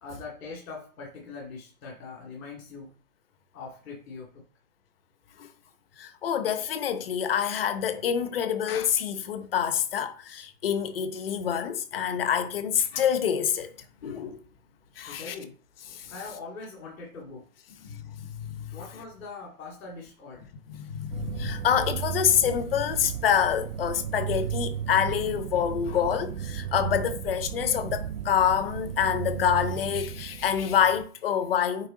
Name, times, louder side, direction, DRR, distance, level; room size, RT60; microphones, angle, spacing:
voice 1, 0.0-2.9 3.5-4.4 15.1-15.6 16.1-17.5 18.7-20.5, left 4 dB, 55° left, 2.3 m, -42 dB
voice 2, 6.0-13.8 14.0-14.4 15.0-15.3 15.9-16.1 17.8-18.8 20.7-31.9, left 8 dB, 35° left, 0.8 m, -27 dB
sound 1, 21.1-31.1, right 10 dB, 60° right, 0.6 m, -34 dB
9.0 x 3.5 x 3.7 m
hypercardioid pair, 160°, 47 cm